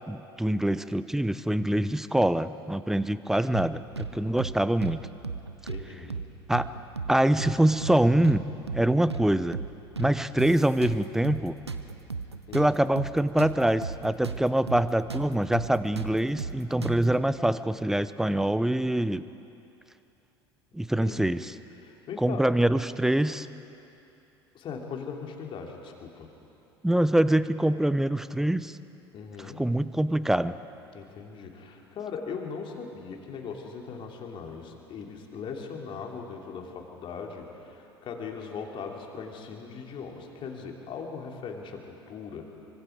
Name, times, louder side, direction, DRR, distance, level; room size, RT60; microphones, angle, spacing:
voice 1, 0.1-5.1 6.5-6.7 7.1-8.5 8.7-9.6 10.0-11.6 12.5-19.2 20.7-21.5 22.2-23.5 26.8-28.8 29.6-30.6, right 1 dB, 5° right, 15 dB, 0.7 m, -24 dB
sound 1, 3.5-4.1 4.4-4.6 4.8-5.8 6.1-6.3 6.5-7.6 7.8-8.0 8.2-9.3 9.5-9.7 10.0-11.4 11.7-14.4 14.7-14.8 15.1-17.1, right 4 dB, 85° right, 0.8 m, -35 dB
voice 2, 4.1-4.5 5.7-6.1 12.5-12.8 21.0-21.4 21.8-22.5 24.5-26.3 29.1-29.6 30.9-42.5, left 5 dB, 40° left, 1 dB, 3.2 m, -39 dB
25.5 x 24.5 x 4.7 m, 2.8 s
figure-of-eight pair, 70°, 13 cm